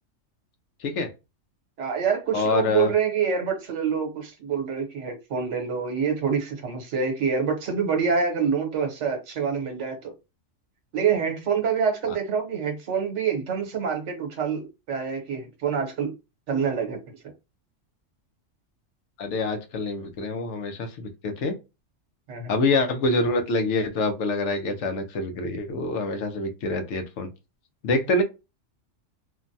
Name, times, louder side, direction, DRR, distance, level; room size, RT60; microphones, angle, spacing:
voice 1, 0.8-1.1 2.3-2.9 12.1-12.2 19.2-21.5 22.5-27.3 27.8-28.2, left 2 dB, 70° left, 0.9 m, -26 dB
voice 2, 1.8-10.1 10.9-16.1 16.5-17.0 22.3-22.5, right 6 dB, 65° right, 1.2 m, -26 dB
3.2 x 2.1 x 2.6 m
omnidirectional pair, 1.4 m